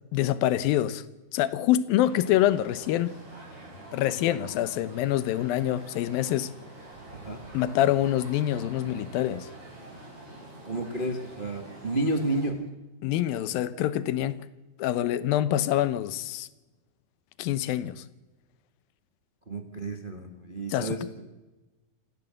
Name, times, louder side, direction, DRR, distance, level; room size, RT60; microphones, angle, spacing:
voice 1, 0.1-1.0 1.3-3.2 3.9-6.5 7.5-9.5 13.0-14.4 14.8-16.5 17.4-18.0 20.7-21.0, left 12 dB, 80° left, 2.5 m, -26 dB
sound 1, 2.0-12.5, right 2 dB, 40° right, 7.8 m, -46 dB
voice 2, 7.1-7.4 10.6-12.6 19.5-21.3, right 1 dB, 85° right, 0.4 m, -31 dB
27.0 x 14.5 x 7.7 m
omnidirectional pair, 4.3 m